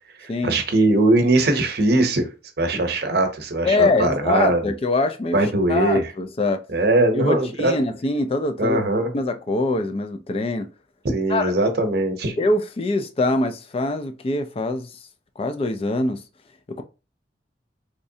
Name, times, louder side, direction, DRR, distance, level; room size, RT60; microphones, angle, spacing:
voice 1, 0.2-2.3 2.6-4.6 5.3-6.0 6.7-7.7 8.6-9.1 11.0-12.4, right 2 dB, 60° right, 0.8 m, -20 dB
voice 2, 3.6-6.6 7.1-8.8 9.1-10.7 11.3-11.5 12.4-14.9 15.4-16.2 16.8-16.9, left 2 dB, 35° left, 0.3 m, -23 dB
3.6 x 3.2 x 2.7 m
head